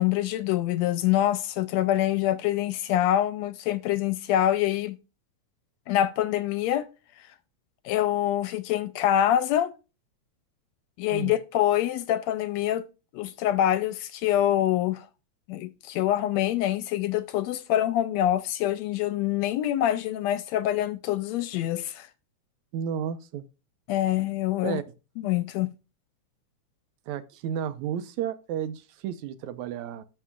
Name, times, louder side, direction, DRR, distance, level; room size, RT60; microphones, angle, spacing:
voice 1, 0.0-5.0 5.9-6.9 7.8-9.7 11.0-12.8 13.1-15.1 15.5-22.1 23.9-24.8 25.2-25.7, left 12 dB, 80° left, 1.7 m, -25 dB
voice 2, 22.7-23.4 24.6-24.8 27.1-30.0, right 9 dB, 80° right, 2.1 m, -32 dB
11.0 x 7.1 x 2.4 m
omnidirectional pair, 3.4 m